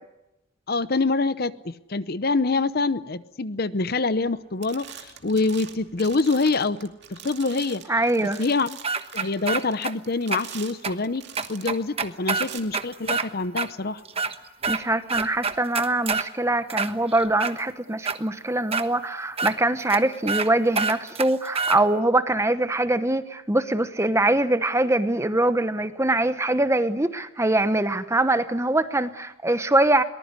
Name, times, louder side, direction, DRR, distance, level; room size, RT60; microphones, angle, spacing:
voice 1, 0.7-7.8 8.2-8.8 9.1-11.2 11.5-14.0, left 3 dB, 50° left, 15 dB, 0.8 m, -25 dB
sound 1, 4.1-4.3 4.6-11.8 12.3-12.6, right 9 dB, 55° right, 2.5 m, -44 dB
voice 2, 7.9-8.4 14.7-30.0, right 2 dB, 15° right, 11 dB, 1.0 m, -23 dB
sound 2, 8.8-9.9 10.3-10.4 10.8-10.9 11.4-13.3 13.6-13.7 14.0-14.8 15.1-16.3 16.7-17.5 18.0-18.2 18.7-18.8 19.4-19.5 19.9-20.0 20.3-20.5 20.7-21.8, right 5 dB, 30° right, 1.2 m, -26 dB
23.0 x 19.5 x 9.7 m, 0.95 s
head